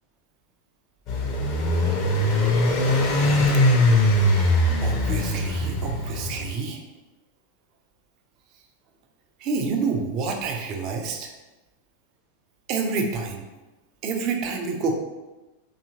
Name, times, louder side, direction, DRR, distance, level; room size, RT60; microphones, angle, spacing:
sound 1, 1.1-6.5, left 1 dB, 40° left, 0.5 m, -21 dB
voice 1, 4.2-6.8 9.4-11.3 12.7-13.4 14.0-14.9, right 4 dB, 40° right, 3 dB, 0.4 m, -28 dB
2.7 x 2.4 x 2.7 m, 1.1 s
figure-of-eight pair, 90°, 0 cm